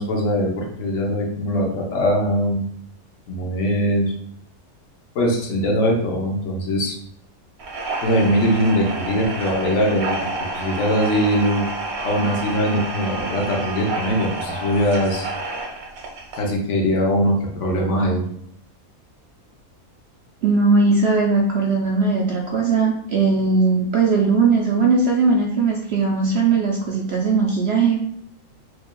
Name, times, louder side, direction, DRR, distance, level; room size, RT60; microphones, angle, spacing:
voice 1, 0.0-2.6 3.3-4.1 5.1-6.9 8.0-10.2 10.5-11.7 12.0-15.3 16.3-18.2, equal, 60° left, -1 dB, 1.1 m, -21 dB
sound 1, 7.6-16.5, right 2 dB, 85° right, 1.3 m, -29 dB
voice 2, 20.4-28.0, right 4 dB, 65° right, -1 dB, 0.6 m, -19 dB
4.6 x 2.8 x 2.2 m, 0.71 s
omnidirectional pair, 1.5 m